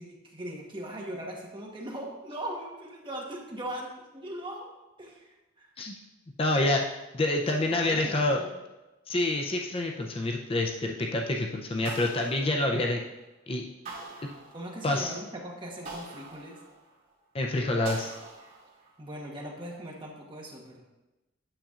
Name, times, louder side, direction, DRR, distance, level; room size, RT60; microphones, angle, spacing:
voice 1, 0.0-4.7 5.0-5.7 7.4-8.5 14.5-16.6 19.0-20.8, right 1 dB, 25° right, -2 dB, 1.2 m, -39 dB
voice 2, 6.4-6.9 7.1-8.4 9.1-13.0 13.5-13.7 14.8-15.1 17.3-18.1, left 2 dB, 30° left, 1 dB, 0.5 m, -27 dB
sound 1, 11.9-13.2 13.9-15.0 15.9-17.1 17.9-19.0, right 3 dB, 40° right, 2.5 m, -44 dB
8.8 x 6.7 x 2.5 m, 1.1 s
head